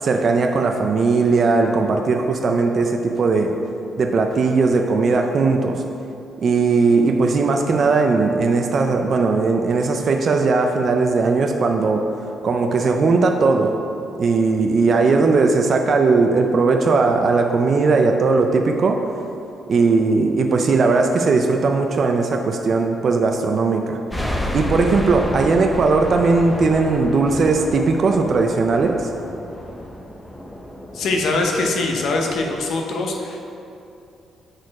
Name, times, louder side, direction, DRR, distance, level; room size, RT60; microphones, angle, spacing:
voice 1, 0.0-3.5 4.0-5.8 6.4-12.1 12.4-13.8 14.2-19.0 19.7-24.0 24.5-29.1, right 4 dB, 50° right, 4 dB, 0.4 m, -18 dB
sound 1, 24.1-32.6, left 1 dB, 10° left, 0.6 m, -31 dB
voice 2, 30.9-33.4, left 2 dB, 70° left, 1 dB, 0.9 m, -22 dB
6.3 x 4.3 x 4.8 m, 2.6 s
cardioid pair, 90°, 0 cm